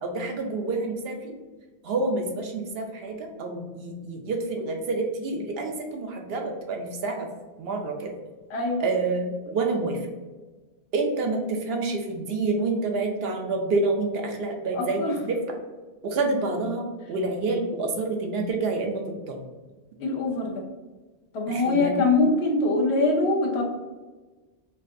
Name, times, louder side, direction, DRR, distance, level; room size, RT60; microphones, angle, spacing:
voice 1, 0.0-1.4 1.8-7.3 7.6-8.1 8.8-10.0 10.9-15.4 16.0-19.4 21.5-21.9, right 3 dB, 65° right, 3 dB, 0.8 m, -28 dB
voice 2, 8.5-8.9 14.7-15.1 20.0-20.6 21.3-23.6, left 2 dB, 75° left, 0 dB, 1.0 m, -23 dB
4.5 x 2.5 x 2.5 m, 1.2 s
omnidirectional pair, 1.1 m